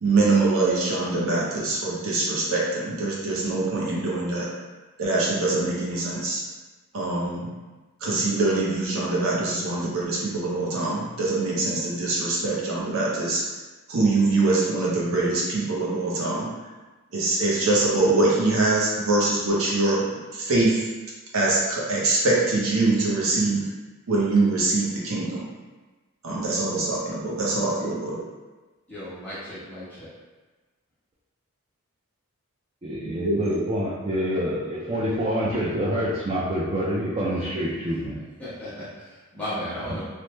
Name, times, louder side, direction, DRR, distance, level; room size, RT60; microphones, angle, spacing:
voice 1, 0.0-4.5 5.0-6.4 6.9-7.5 8.0-13.4 13.9-16.5 17.1-20.0 20.3-20.9 21.3-23.7 24.1-25.4 26.2-28.2 33.0-33.7, right 2 dB, 65° right, -5 dB, 0.6 m, -23 dB
voice 2, 28.9-30.1 37.3-37.5 38.4-40.0, equal, 5° left, -13 dB, 1.1 m, -35 dB
voice 3, 32.8-38.2, equal, 25° right, -7 dB, 0.3 m, -27 dB
3.1 x 2.0 x 3.0 m, 1.2 s
head